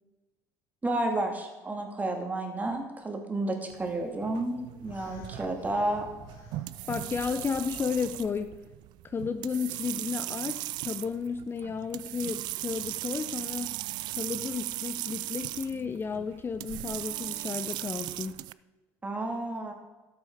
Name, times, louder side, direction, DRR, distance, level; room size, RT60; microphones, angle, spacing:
voice 1, 0.8-4.6 4.8-6.1 19.0-19.7, right 2 dB, 20° right, 3 dB, 2.3 m, -31 dB
sound 1, 3.7-18.5, right 17 dB, 65° right, 0.3 m, -38 dB
sound 2, 4.8-8.3, left 4 dB, 75° left, 3.3 m, -50 dB
voice 2, 6.9-8.6 9.0-13.7 14.1-18.4, left 5 dB, 30° left, 9 dB, 0.6 m, -33 dB
12.5 x 7.9 x 4.8 m, 1.2 s
supercardioid pair, 85°, 8 cm